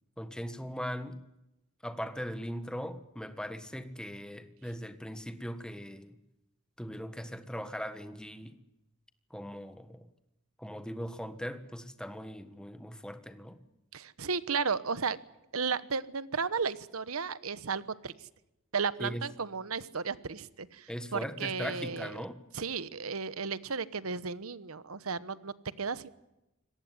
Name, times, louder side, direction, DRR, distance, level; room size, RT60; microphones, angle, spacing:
voice 1, 0.2-1.2 1.8-6.2 6.8-8.6 9.3-10.1 10.6-13.6 19.0-19.2 20.9-22.3, equal, 5° left, 10 dB, 1.4 m, -39 dB
voice 2, 13.9-15.2 15.5-18.3 18.7-22.2 22.5-26.1, right 5 dB, 90° right, 16 dB, 1.1 m, -34 dB
25.0 x 18.5 x 9.4 m, 0.93 s
head